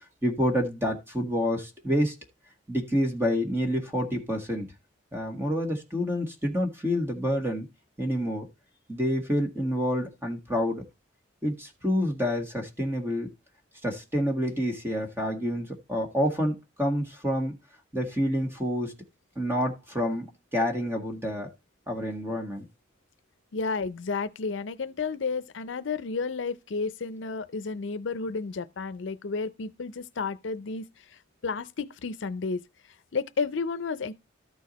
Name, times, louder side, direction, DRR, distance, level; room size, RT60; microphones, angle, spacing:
voice 1, 0.2-2.1 2.7-4.7 5.1-7.7 8.0-8.5 8.9-10.8 11.4-13.3 13.8-17.6 17.9-18.9 19.4-21.5 21.9-22.7, equal, 10° right, 1.7 m, -28 dB
voice 2, 23.5-32.6 33.1-34.1, left 4 dB, 70° left, 0.5 m, -32 dB
13.0 x 4.7 x 4.1 m
head